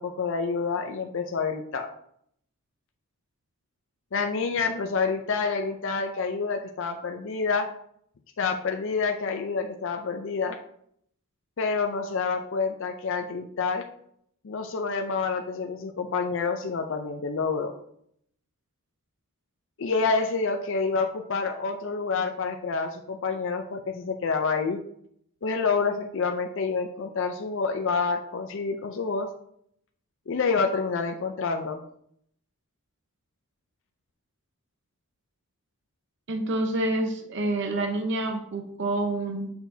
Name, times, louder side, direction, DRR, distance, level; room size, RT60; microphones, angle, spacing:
voice 1, 0.0-1.9 4.1-7.7 8.4-10.6 11.6-13.8 14.4-17.7 19.8-24.8 25.4-29.3 30.3-31.8, left 4 dB, 60° left, 5 dB, 0.5 m, -28 dB
voice 2, 36.3-39.5, right 2 dB, 55° right, 4 dB, 0.8 m, -28 dB
6.7 x 6.0 x 2.7 m, 0.69 s
head